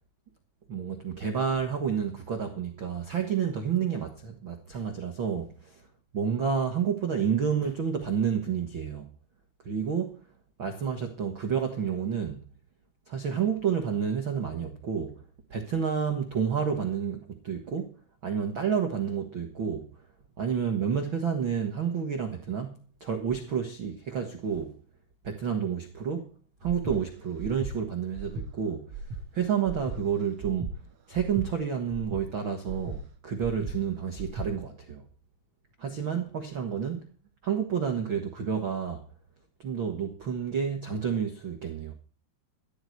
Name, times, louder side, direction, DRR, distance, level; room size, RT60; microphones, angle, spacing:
voice 1, 0.7-5.8 6.1-9.1 9.6-10.2 10.6-12.5 13.1-15.2 15.5-19.9 20.4-24.8 25.2-26.3 26.6-30.8 31.1-35.0 35.8-37.1 37.4-39.0 39.6-42.0, right 7 dB, 90° right, 1.0 m, -30 dB
Breathing, 26.6-27.0 27.4-27.7 28.1-28.5 28.9-29.2 29.6-30.0 30.4-30.7 31.1-31.5 31.9-32.2 32.6-33.0 33.4-33.7 34.1-34.5, right 3 dB, 45° right, 2.3 m, -37 dB
13.5 x 13.5 x 4.7 m
omnidirectional pair, 4.9 m